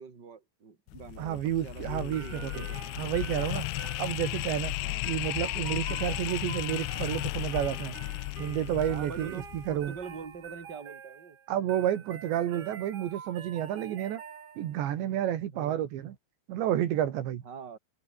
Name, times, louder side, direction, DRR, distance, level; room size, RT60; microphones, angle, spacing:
voice 1, 0.0-2.9 4.7-5.1 8.8-11.4 15.5-15.8 17.4-17.8, right 5 dB, 25° right, 3.7 m, -44 dB
sound 1, 0.9-10.0, left 22 dB, 80° left, 2.4 m, -35 dB
voice 2, 1.2-2.7 3.0-4.7 5.1-8.0 8.4-10.0 11.5-14.2 14.6-16.2 16.5-17.4, right 11 dB, 80° right, 4.1 m, -30 dB
sound 2, 2.1-14.9, right 7 dB, 60° right, 5.2 m, -46 dB
omnidirectional pair, 5.1 m